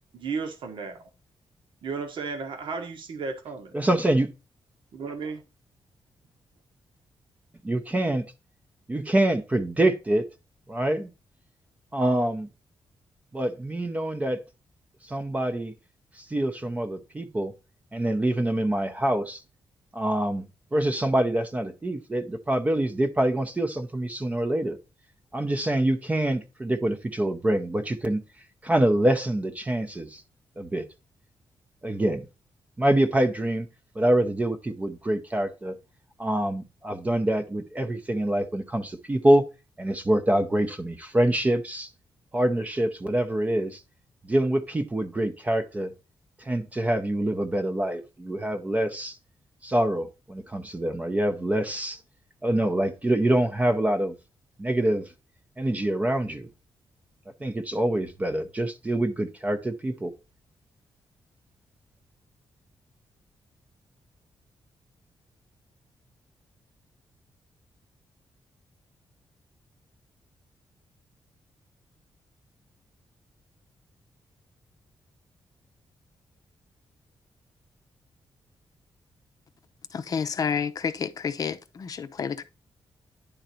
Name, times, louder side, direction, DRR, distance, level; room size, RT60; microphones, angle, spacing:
voice 1, 0.1-1.0 1.8-3.7 4.9-5.4, right 5 dB, 75° right, 1.4 m, -34 dB
voice 2, 3.7-4.3 7.6-8.2 8.9-10.2 10.7-11.1 11.9-12.5 13.3-14.4 15.0-15.7 16.2-17.5 17.9-19.4 19.9-24.8 25.3-28.2 28.6-30.2 30.6-30.8 31.8-32.2 32.8-33.7 33.9-35.7 36.2-39.4 39.8-41.9 42.3-43.8 44.2-45.9 46.4-49.2 49.6-52.0 52.4-54.1 54.6-55.0 55.6-56.5 57.4-60.1, right 1 dB, 15° right, 0.7 m, -25 dB
voice 3, 79.9-82.4, left 6 dB, 45° left, 0.7 m, -29 dB
10.0 x 3.9 x 4.3 m
wide cardioid pair, 160°, 9 cm